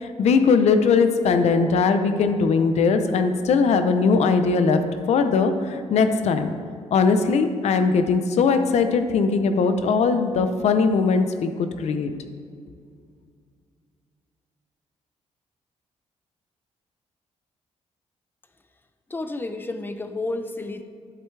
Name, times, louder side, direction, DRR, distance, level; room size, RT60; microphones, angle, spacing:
voice 1, 0.0-4.8 5.1-6.5 6.9-12.1, left 5 dB, 70° left, 8 dB, 0.7 m, -20 dB
voice 2, 19.1-20.8, left 2 dB, 20° left, 8 dB, 0.6 m, -31 dB
11.0 x 8.1 x 3.3 m, 2.2 s
cardioid pair, 120°, 12 cm